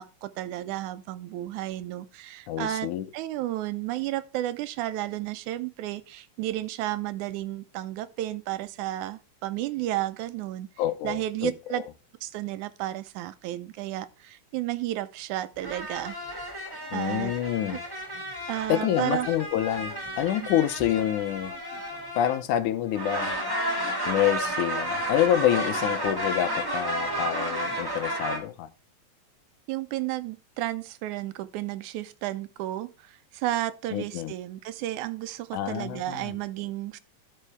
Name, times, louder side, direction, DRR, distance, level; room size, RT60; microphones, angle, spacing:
voice 1, 0.0-10.7 11.0-11.8 12.2-16.2 16.9-17.3 18.5-19.3 29.7-37.0, right 14 dB, 85° right, 2.0 m, -32 dB
voice 2, 2.5-3.1 10.8-11.8 16.9-17.8 18.7-21.5 22.2-23.4 24.1-28.7 33.9-34.3 35.5-36.3, left 11 dB, 85° left, 2.2 m, -27 dB
sound 1, 15.6-22.6 22.9-28.4, right 1 dB, 10° right, 1.6 m, -32 dB
13.0 x 5.6 x 3.4 m
omnidirectional pair, 3.5 m